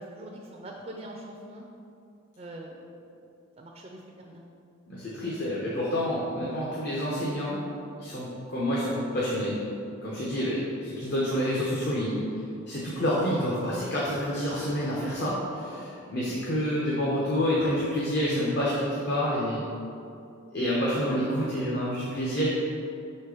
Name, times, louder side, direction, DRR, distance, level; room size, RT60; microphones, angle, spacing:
voice 1, 0.0-1.7 2.4-2.9 3.6-4.4 10.3-10.5 16.2-16.4 21.1-21.2, right 1 dB, 30° right, 0 dB, 0.5 m, -43 dB
voice 2, 4.9-7.6 8.0-9.6 10.0-12.2 12.7-19.6 20.5-22.5, equal, 50° left, -7 dB, 1.0 m, -28 dB
5.7 x 4.4 x 4.9 m, 2.6 s
head